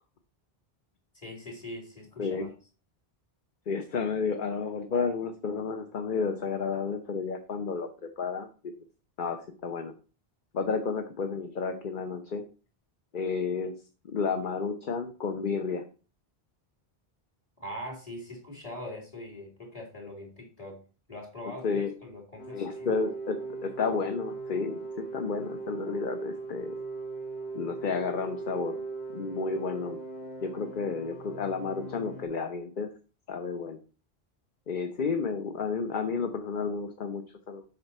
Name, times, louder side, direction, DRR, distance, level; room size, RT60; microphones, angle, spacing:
voice 1, 1.1-2.5 17.6-20.8 21.1-23.0, left 1 dB, 35° left, 1 dB, 3.3 m, -42 dB
voice 2, 2.2-2.5 3.7-8.7 9.2-9.9 10.5-12.4 13.1-13.7 14.0-15.8 21.6-21.9 22.5-26.7 27.5-28.8 29.1-30.0 30.4-32.9 33.3-33.8 34.7-37.6, left 5 dB, 55° left, 6 dB, 1.0 m, -31 dB
sound 1, 22.4-32.3, right 3 dB, 90° left, 2.1 m, -39 dB
8.4 x 6.0 x 4.2 m, 0.36 s
omnidirectional pair, 1.0 m